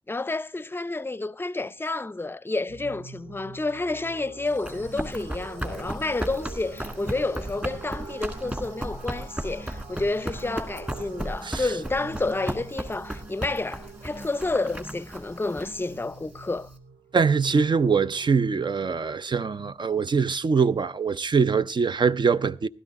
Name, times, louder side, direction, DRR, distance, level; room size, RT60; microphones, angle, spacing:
voice 1, 0.1-16.7, left 2 dB, 25° left, 0.5 m, -30 dB
sound 1, 2.7-19.0, right 5 dB, 75° right, 2.1 m, -46 dB
Run, 4.5-16.7, right 1 dB, 15° right, 1.8 m, -35 dB
sound 2, 4.7-16.2, right 1 dB, 30° right, 2.9 m, -47 dB
voice 2, 17.1-22.7, right 5 dB, 50° right, 0.5 m, -23 dB
15.0 x 12.5 x 3.6 m
wide cardioid pair, 105°, 10 cm